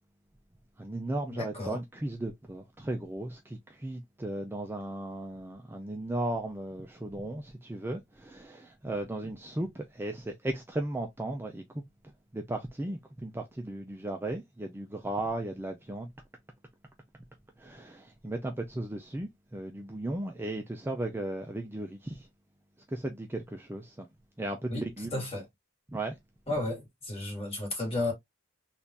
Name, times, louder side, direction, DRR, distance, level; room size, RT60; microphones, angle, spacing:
voice 1, 0.8-11.8 12.3-16.1 17.6-22.3 22.9-24.1 24.4-25.2 25.9-26.2, right 1 dB, 10° right, 0.4 m, -36 dB
voice 2, 1.3-1.8 24.7-25.5 26.5-28.1, left 2 dB, 30° left, 1.9 m, -33 dB
3.6 x 2.5 x 2.7 m
head